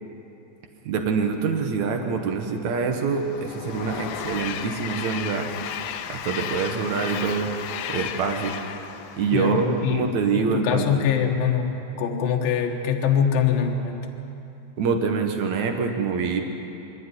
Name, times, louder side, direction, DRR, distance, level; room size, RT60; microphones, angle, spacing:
voice 1, 0.9-5.5 6.1-7.5 7.9-8.6 9.2-11.1 14.8-16.4, right 5 dB, 70° right, 4 dB, 1.8 m, -25 dB
Train, 2.7-10.1, left 9 dB, 85° left, 3.1 m, -34 dB
voice 2, 9.3-14.1, left 7 dB, 65° left, 1 dB, 2.7 m, -24 dB
25.0 x 12.5 x 9.8 m, 2.9 s
omnidirectional pair, 5.2 m